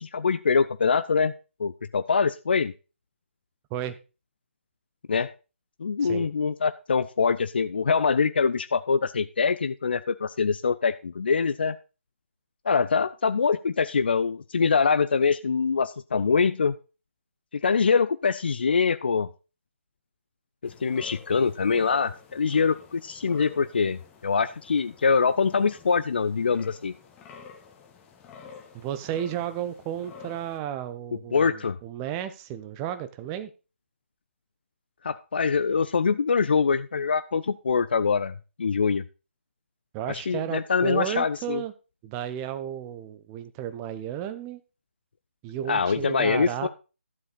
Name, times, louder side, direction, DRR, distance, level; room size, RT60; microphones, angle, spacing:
voice 1, 0.0-1.3 1.6-2.7 5.1-5.3 5.8-11.8 12.6-16.7 17.5-19.3 20.6-26.9 31.3-31.8 35.0-39.0 40.1-41.6 45.7-46.7, left 5 dB, 50° left, 12 dB, 0.5 m, -24 dB
sound 1, 20.6-30.6, left 6 dB, 15° left, 1.3 m, -49 dB
voice 2, 28.7-33.5 39.9-41.7 42.0-44.6 45.4-46.7, right 10 dB, 15° right, 11 dB, 0.8 m, -33 dB
12.0 x 7.3 x 4.0 m, 0.31 s
figure-of-eight pair, 145°, 7 cm